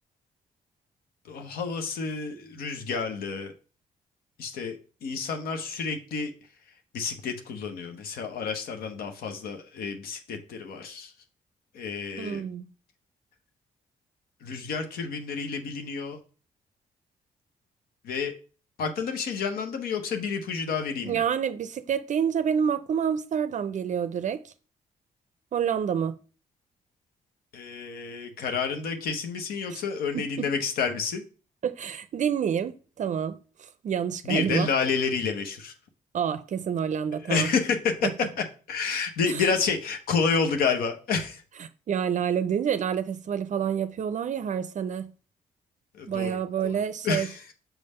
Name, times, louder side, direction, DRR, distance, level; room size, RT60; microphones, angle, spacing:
voice 1, 1.3-3.5 4.4-6.3 6.9-11.1 11.7-12.4 14.4-16.2 18.0-18.3 18.8-21.2 27.5-31.2 34.2-35.7 37.3-38.1 38.4-41.4 46.0-46.8 47.0-47.4, left 5 dB, 85° left, 0.8 m, -29 dB
voice 2, 12.2-12.7 21.1-24.5 25.5-26.2 29.7-29.8 30.1-30.2 31.6-34.7 36.1-37.5 39.3-39.5 41.6-45.1 46.1-47.3, right 8 dB, 55° right, 0.4 m, -28 dB
6.0 x 3.4 x 5.3 m
cardioid pair, 65°, 15 cm